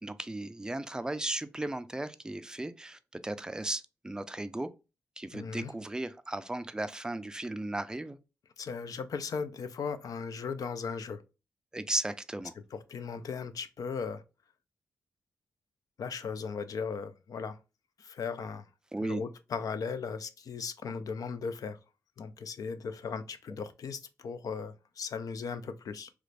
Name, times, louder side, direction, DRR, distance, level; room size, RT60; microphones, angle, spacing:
voice 1, 0.0-4.7 5.2-8.2 11.7-12.5 18.9-19.2, right 2 dB, 10° right, 0.3 m, -36 dB
voice 2, 5.3-5.7 8.6-11.2 12.7-14.2 16.0-17.6 18.0-18.7 19.0-21.8 22.2-26.1, left 5 dB, 70° left, 0.4 m, -37 dB
3.0 x 2.5 x 3.2 m
cardioid pair, 75°, 6 cm